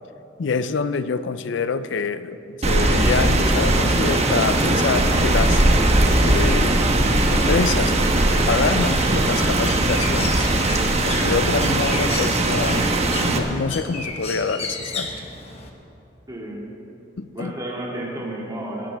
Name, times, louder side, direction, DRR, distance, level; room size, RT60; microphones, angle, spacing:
voice 1, 0.4-5.6 6.2-7.0 7.3-7.9 8.5-10.5 11.0-15.1 17.2-17.5, left 5 dB, 80° left, 13 dB, 0.5 m, -26 dB
Rain, 2.6-13.4, right 1 dB, 35° right, 1.1 m, -19 dB
Bird, 7.6-15.7, left 3 dB, 35° left, 1.2 m, -34 dB
voice 2, 16.3-16.7 17.3-18.9, right 1 dB, 20° right, -3 dB, 2.2 m, -32 dB
20.0 x 12.0 x 3.5 m, 2.8 s
head